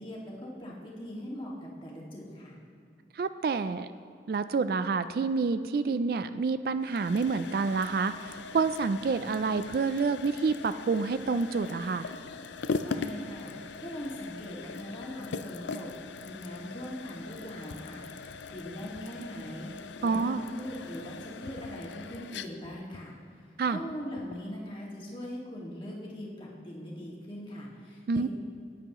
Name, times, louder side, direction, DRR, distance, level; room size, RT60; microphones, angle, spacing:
voice 1, 0.0-1.5 1.8-2.6 12.8-13.5 13.8-15.9 16.2-18.1 18.5-19.7 20.0-23.1 23.7-28.3, equal, 30° left, -4 dB, 1.9 m, -41 dB
voice 2, 3.2-3.9 4.3-12.1 20.0-20.4 23.6-23.8 28.1-28.3, right 4 dB, 55° right, 12 dB, 0.3 m, -28 dB
sound 1, 6.8-24.5, left 4 dB, 90° left, 0.5 m, -41 dB
17.5 x 9.4 x 3.0 m, 2.4 s
head